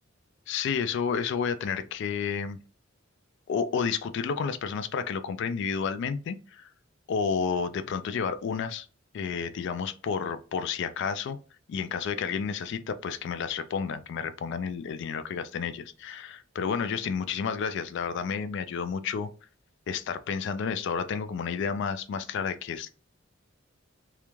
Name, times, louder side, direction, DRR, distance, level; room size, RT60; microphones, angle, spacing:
voice 1, 0.5-2.6 3.5-6.7 7.1-8.9 9.1-11.4 11.7-19.3 19.9-22.9, left 6 dB, 60° left, 0.3 m, -31 dB
2.4 x 2.2 x 3.0 m
head